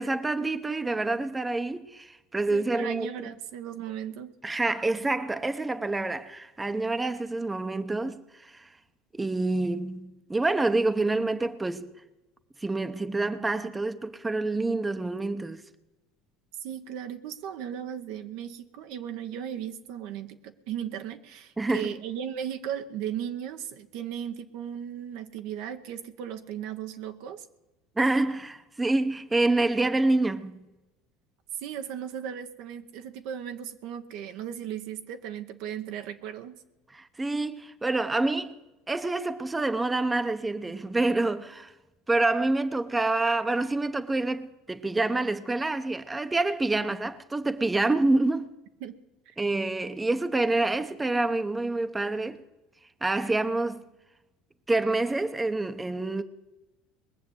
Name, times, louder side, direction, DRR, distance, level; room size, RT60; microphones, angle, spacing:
voice 1, 0.0-3.1 4.4-8.7 9.1-11.9 12.6-15.6 21.6-21.9 28.0-30.6 36.9-38.6 38.9-41.7 42.1-48.5 49.4-52.4 53.0-53.8 54.7-56.2, right 2 dB, 15° right, 0.9 m, -27 dB
voice 2, 2.5-4.4 16.6-27.5 31.6-36.6 48.8-49.0 49.3-49.4, right 9 dB, 70° right, 1.0 m, -36 dB
20.5 x 6.9 x 7.9 m
hypercardioid pair, 80°, 0 cm